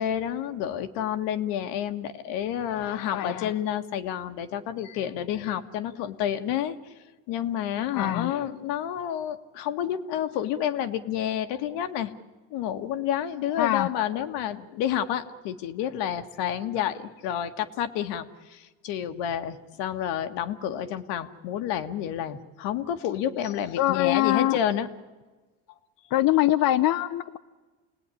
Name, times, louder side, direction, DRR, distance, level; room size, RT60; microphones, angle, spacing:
voice 1, 0.0-6.8 7.3-12.1 12.5-24.9, left 10 dB, 80° left, 8 dB, 1.8 m, -29 dB
voice 2, 3.1-3.5 7.9-8.3 13.6-13.9 23.8-24.6 26.1-27.4, left 14 dB, 55° left, 10 dB, 0.9 m, -23 dB
28.0 x 18.5 x 10.0 m, 1.3 s
supercardioid pair, 105°, 41 cm